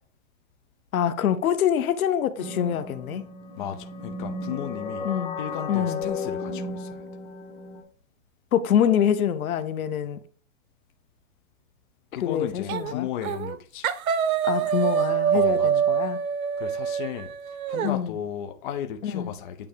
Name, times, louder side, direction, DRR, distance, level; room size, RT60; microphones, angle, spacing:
voice 1, 0.9-3.2 5.0-5.4 5.7-6.0 8.5-10.2 12.2-13.1 14.4-16.2 17.8-18.1 19.0-19.3, left 9 dB, 80° left, 1.0 m, -25 dB
sound 1, 2.4-7.8, left 3 dB, 10° left, 1.6 m, -34 dB
voice 2, 3.6-5.1 5.4-7.0 12.1-13.9 15.3-15.7 16.6-17.3 17.7-19.7, left 9 dB, 35° left, 0.7 m, -35 dB
sound 2, 12.7-12.9 13.2-13.6 13.8-17.9, right 8 dB, 80° right, 1.0 m, -25 dB
8.9 x 3.5 x 5.1 m
hypercardioid pair, 165°, 42 cm